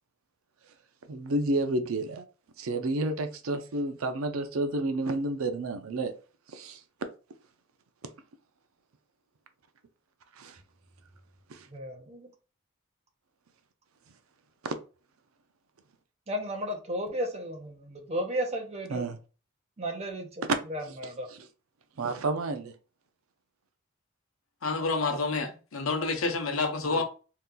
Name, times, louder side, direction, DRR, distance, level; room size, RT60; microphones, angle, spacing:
voice 1, 1.1-2.2 2.6-6.1 6.5-6.8 10.4-10.6 11.5-11.7 14.6-14.7 18.9-19.2 20.9-21.0 21.3-21.5 22.0-22.7 26.9-27.0, right 2 dB, 75° right, 0.5 m, -30 dB
voice 2, 11.7-12.3 16.3-19.1 19.8-20.4 20.7-21.3, equal, 30° right, 0.6 m, -34 dB
voice 3, 24.6-27.0, left 3 dB, 70° left, 0.7 m, -28 dB
2.8 x 2.3 x 3.7 m
head